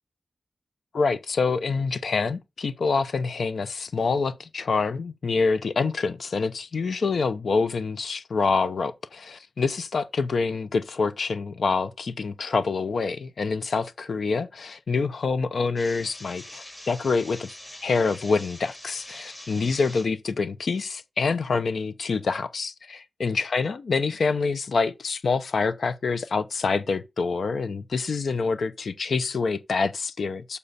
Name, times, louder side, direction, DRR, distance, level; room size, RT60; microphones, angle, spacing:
voice 1, 0.9-17.5 17.8-30.6, left 4 dB, 70° left, 0.8 m, -26 dB
sound 1, 15.8-20.1, left 1 dB, 15° left, 3.2 m, -43 dB
6.9 x 6.7 x 4.1 m
wide cardioid pair, 100°, 0 cm